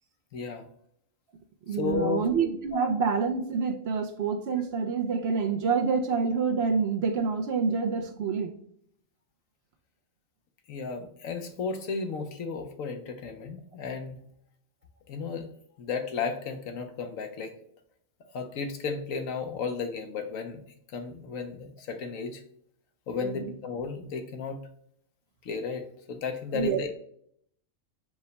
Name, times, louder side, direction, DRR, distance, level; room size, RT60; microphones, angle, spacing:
voice 1, 0.3-0.6 1.7-2.2 2.7-2.8 10.7-14.2 15.1-15.5 15.8-17.5 18.3-20.6 20.9-22.4 23.1-24.6 25.4-26.9, left 5 dB, 85° left, 6 dB, 1.1 m, -34 dB
voice 2, 1.7-8.5 23.2-23.5 26.5-26.8, right 5 dB, 65° right, 4 dB, 0.7 m, -27 dB
4.7 x 2.2 x 4.0 m, 0.67 s
omnidirectional pair, 1.4 m